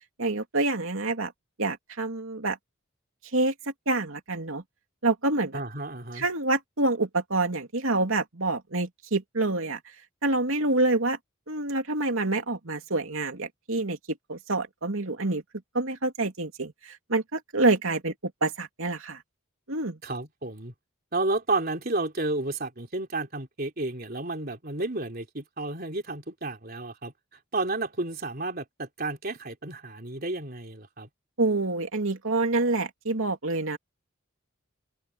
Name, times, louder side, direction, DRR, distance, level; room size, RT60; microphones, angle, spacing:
voice 1, 0.2-1.3 1.6-2.6 3.3-3.5 3.9-4.6 5.0-5.6 6.1-9.8 10.2-11.2 11.5-15.4 15.7-18.1 18.4-19.2 19.7-20.0 31.4-33.8, right 2 dB, 75° right, 2.9 m, -27 dB
voice 2, 5.5-6.3 20.0-20.7 21.1-27.1 27.5-31.1, right 2 dB, 45° right, 3.6 m, -31 dB
open air
head